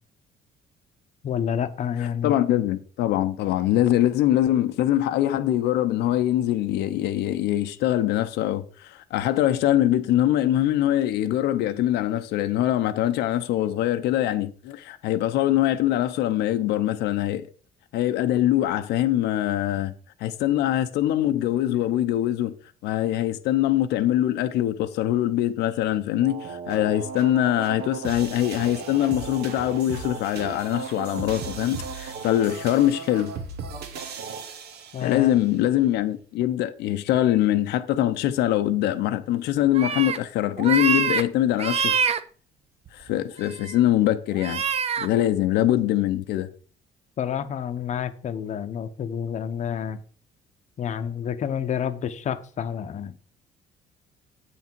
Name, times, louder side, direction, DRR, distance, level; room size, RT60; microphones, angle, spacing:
voice 1, 1.2-2.3 34.9-35.4 47.2-50.0 50.8-53.2, left 8 dB, 45° left, 0.8 m, -29 dB
voice 2, 2.0-17.4 17.9-19.9 20.2-22.5 22.8-33.3 35.0-42.1 42.9-44.6 45.0-46.5, left 13 dB, 85° left, 0.7 m, -23 dB
sound 1, 26.2-35.4, right 5 dB, 75° right, 1.3 m, -36 dB
sound 2, 39.7-40.2 40.6-41.2 41.6-42.2 42.9-43.1 43.4-43.8 44.3-45.1, right 6 dB, 35° right, 0.7 m, -25 dB
8.1 x 5.9 x 4.5 m
cardioid pair, 110°, 17 cm